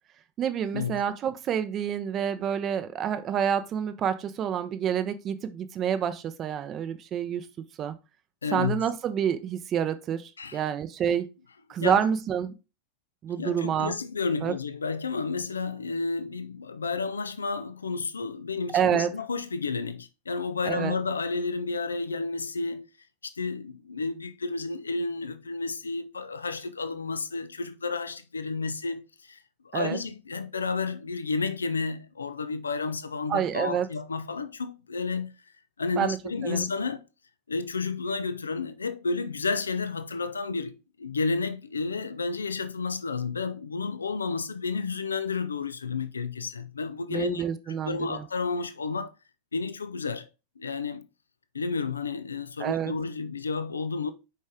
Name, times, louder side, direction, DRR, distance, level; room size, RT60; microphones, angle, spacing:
voice 1, 0.4-7.9 8.5-11.3 11.7-12.5 13.2-13.9 14.4-14.5 18.7-19.1 20.7-21.0 29.7-30.0 33.3-33.9 36.0-36.2 36.4-36.7 47.1-48.2 52.6-52.9, right 8 dB, 30° right, 0.7 m, -28 dB
voice 2, 8.4-8.8 10.4-10.7 11.8-12.0 13.4-22.9 23.2-29.4 29.7-35.3 35.8-37.0 37.5-47.4 47.8-49.1 49.5-50.3 50.6-51.0 51.5-54.1, left 4 dB, 75° left, 0.7 m, -31 dB
6.6 x 5.4 x 3.6 m
figure-of-eight pair, 90°, 0 cm